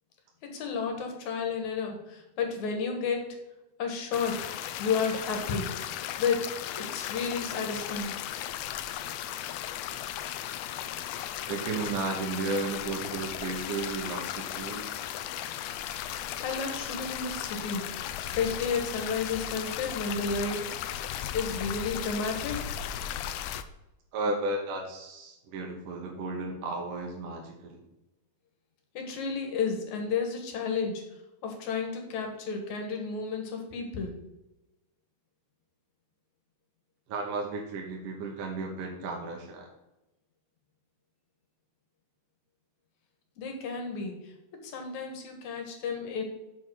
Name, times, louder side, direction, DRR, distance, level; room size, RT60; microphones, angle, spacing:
voice 1, 0.4-3.4 3.8-4.4 4.8-8.2 16.4-17.8 18.2-20.7 21.3-22.7 28.9-31.0 31.4-34.1 43.4-46.2, left 5 dB, 65° left, 3 dB, 2.7 m, -32 dB
sound 1, 4.1-23.6, left 11 dB, 90° left, 1.5 m, -36 dB
voice 2, 11.5-15.0 24.1-27.8 37.1-39.7, right 3 dB, 80° right, 0 dB, 2.7 m, -34 dB
7.0 x 5.5 x 6.3 m, 0.96 s
omnidirectional pair, 3.7 m